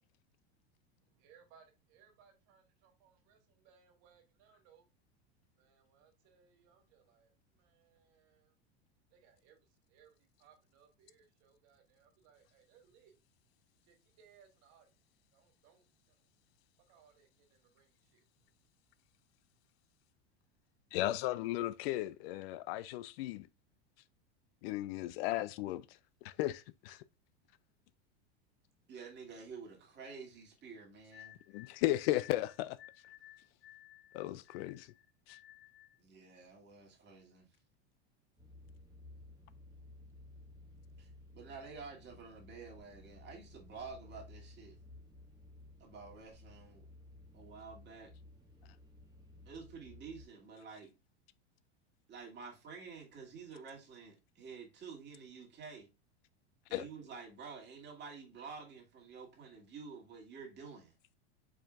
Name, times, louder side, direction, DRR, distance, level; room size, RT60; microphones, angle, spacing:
voice 1, 1.0-4.9 5.6-8.5 9.1-13.2 13.8-14.9 15.3-16.2 16.9-18.5, right 7 dB, 55° right, 1.4 m, -66 dB
voice 2, 20.9-23.5 24.6-26.0 26.2-27.0 31.5-32.8 34.1-34.9 35.3-35.4 56.7-56.9, left 15 dB, 65° left, 0.4 m, -35 dB
voice 3, 28.9-31.4 36.0-37.5 41.0-44.8 45.8-46.8 47.3-48.1 49.5-50.9 52.1-55.9 56.7-60.9, right 5 dB, 30° right, 2.2 m, -50 dB
sound 1, 31.1-36.0, left 14 dB, 85° left, 1.8 m, -57 dB
sound 2, 38.4-50.3, left 2 dB, 10° right, 1.5 m, -56 dB
4.8 x 4.4 x 2.4 m
supercardioid pair, 115°, 33 cm